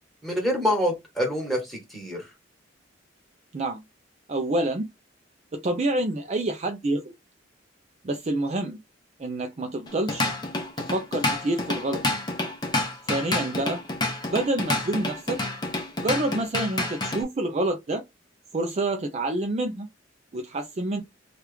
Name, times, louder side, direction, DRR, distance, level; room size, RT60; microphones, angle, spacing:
voice 1, 0.2-2.3, equal, ahead, 1.4 m, -26 dB
voice 2, 4.3-4.8 5.5-7.1 8.0-8.8 9.2-10.3 10.9-12.0 13.1-13.8 14.3-15.4 16.0-18.0 18.5-19.9 20.3-21.0, right 2 dB, 35° right, 0.4 m, -27 dB
Drum kit / Drum, 9.9-17.2, left 2 dB, 25° left, 0.8 m, -28 dB
3.0 x 2.4 x 3.3 m
head